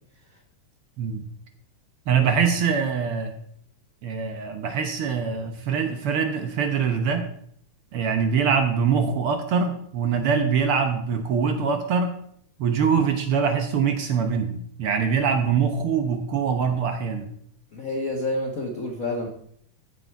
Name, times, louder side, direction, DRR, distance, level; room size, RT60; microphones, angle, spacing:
voice 1, 2.1-3.3 4.0-7.3 7.9-12.2 12.6-17.3, right 6 dB, 70° right, 6 dB, 1.3 m, -23 dB
voice 2, 17.7-19.3, left 2 dB, 65° left, 1 dB, 0.8 m, -29 dB
14.5 x 6.8 x 4.6 m, 0.66 s
omnidirectional pair, 3.7 m